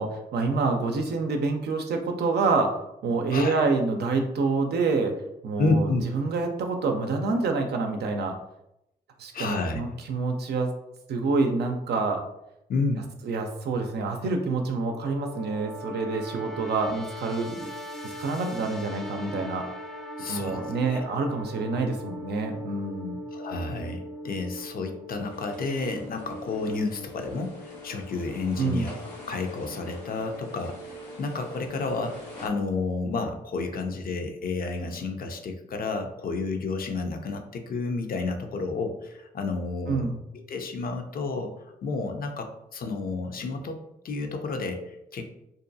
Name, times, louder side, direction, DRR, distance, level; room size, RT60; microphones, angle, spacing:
voice 1, 0.0-2.7 3.0-5.1 5.4-8.4 9.2-10.7 11.1-12.2 13.2-17.7 18.0-19.7 20.3-23.2 28.6-28.9 39.9-40.2, right 3 dB, 70° right, 4 dB, 0.5 m, -27 dB
voice 2, 3.3-3.6 5.6-6.0 9.3-9.8 12.7-13.1 20.2-20.6 20.9-21.1 23.3-32.2 32.4-41.5 41.8-43.8 44.0-45.3, left 3 dB, 55° left, 5 dB, 0.5 m, -31 dB
sound 1, 14.7-32.4, equal, ahead, 0.5 m, -40 dB
sound 2, 25.1-32.5, left 1 dB, 85° left, 1.0 m, -47 dB
2.6 x 2.2 x 2.6 m, 0.84 s
cardioid pair, 55°, 18 cm